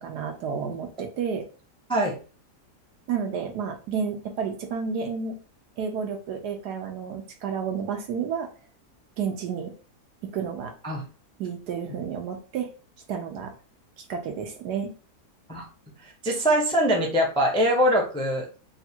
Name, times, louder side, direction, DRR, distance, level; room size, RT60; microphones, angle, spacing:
voice 1, 0.0-1.4 3.1-5.4 5.8-8.5 9.2-9.7 10.3-10.7 11.4-12.7 13.1-13.5 14.1-14.9, right 6 dB, 75° right, 4 dB, 1.2 m, -31 dB
voice 2, 16.0-18.5, equal, 5° left, -1 dB, 0.3 m, -23 dB
3.5 x 2.4 x 4.3 m, 0.37 s
omnidirectional pair, 1.8 m